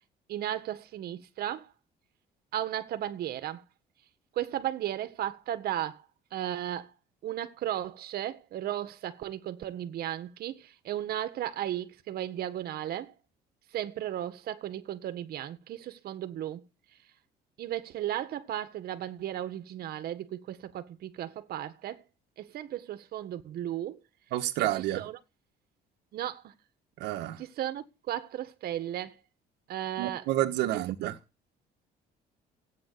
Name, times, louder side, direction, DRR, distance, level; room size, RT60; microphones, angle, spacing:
voice 1, 0.3-1.7 2.5-3.6 4.3-6.0 6.3-6.9 7.2-13.1 13.7-16.6 17.6-22.0 22.4-24.0 25.0-25.2 26.1-26.5 27.4-29.1 29.7-30.2 30.6-31.1, right 12 dB, 65° right, 1.7 m, -35 dB
voice 2, 24.3-25.0 27.0-27.4 30.0-31.2, right 14 dB, 90° right, 1.6 m, -29 dB
16.0 x 9.2 x 6.9 m
cardioid pair, 110°, 17 cm